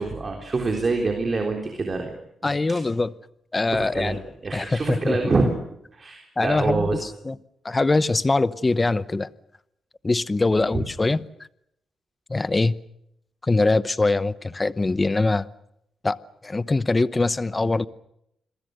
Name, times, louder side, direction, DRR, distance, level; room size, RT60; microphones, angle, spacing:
voice 1, 0.0-2.1 2.4-2.8 3.7-4.2 4.4-5.5 5.9-7.0 10.5-10.7, right 3 dB, 35° right, 3.8 m, -26 dB
voice 2, 2.4-3.1 3.5-4.2 4.5-5.3 6.4-7.4 7.6-9.3 10.0-11.2 12.3-12.8 13.4-15.5 16.0-17.9, left 3 dB, 20° left, 0.9 m, -23 dB
28.0 x 22.5 x 6.6 m
cardioid pair, 105°, 0 cm